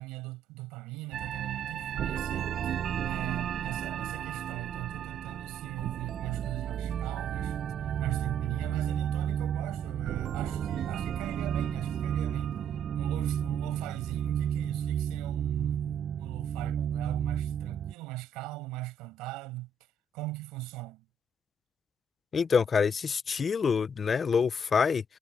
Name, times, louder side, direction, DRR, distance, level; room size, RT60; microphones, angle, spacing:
voice 1, 0.0-7.6 7.8-12.6 12.9-19.7 20.1-21.1, right 21 dB, 85° right, 7.3 m, -40 dB
sound 1, 1.1-17.9, right 9 dB, 40° right, 0.5 m, -32 dB
voice 2, 22.3-25.0, left 6 dB, 25° left, 0.4 m, -26 dB
cardioid pair, 150°, 0 cm